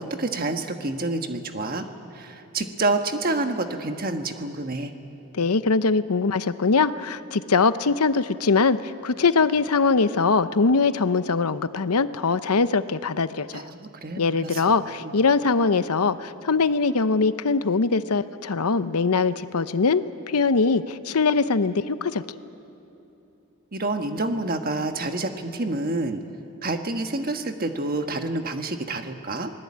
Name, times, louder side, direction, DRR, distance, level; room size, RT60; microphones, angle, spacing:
voice 1, 0.0-1.8 2.1-4.9 13.5-14.6 15.0-15.1 23.7-26.2 26.6-29.5, right 2 dB, 40° right, 6 dB, 1.4 m, -28 dB
voice 2, 5.3-13.7 14.2-22.2, left 4 dB, 85° left, 13 dB, 0.8 m, -22 dB
26.5 x 19.5 x 8.6 m, 2.9 s
head